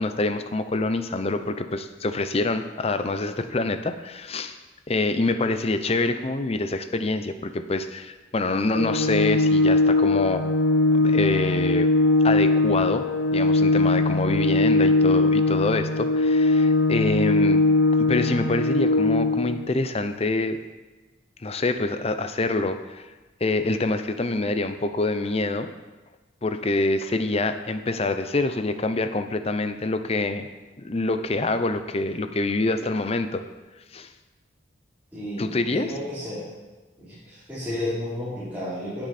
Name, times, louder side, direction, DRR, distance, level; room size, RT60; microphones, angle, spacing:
voice 1, 0.0-4.6 4.9-10.5 11.0-11.9 12.2-13.1 13.3-17.6 18.0-20.6 21.4-23.1 23.4-25.7 26.4-30.5 30.8-33.4 33.9-34.1 35.4-35.9, left 2 dB, 35° left, 9 dB, 0.6 m, -26 dB
Organ, 8.7-19.7, left 2 dB, 75° left, 0.8 m, -20 dB
voice 2, 35.1-36.5 37.0-39.0, left 1 dB, 10° right, -14 dB, 3.5 m, -32 dB
17.5 x 6.2 x 4.3 m, 1.2 s
head